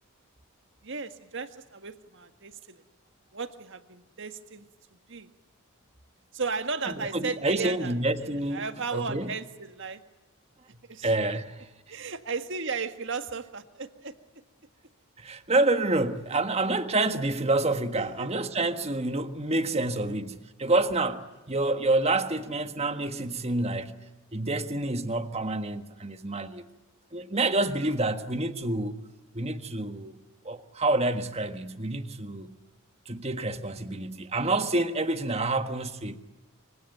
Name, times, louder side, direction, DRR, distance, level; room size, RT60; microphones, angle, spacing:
voice 1, 0.8-2.8 3.3-4.6 5.1-5.3 6.3-8.0 8.2-10.0 10.9-11.1 11.9-14.1 17.9-18.3 19.7-20.2, right 4 dB, 60° right, 1.8 m, -35 dB
voice 2, 6.9-8.7 8.9-9.3 11.0-11.7 15.2-23.9 24.3-26.7 27.1-29.0 29.3-30.1 30.4-32.5 33.0-36.2, right 2 dB, 30° right, 1.6 m, -28 dB
26.0 x 25.5 x 9.1 m
head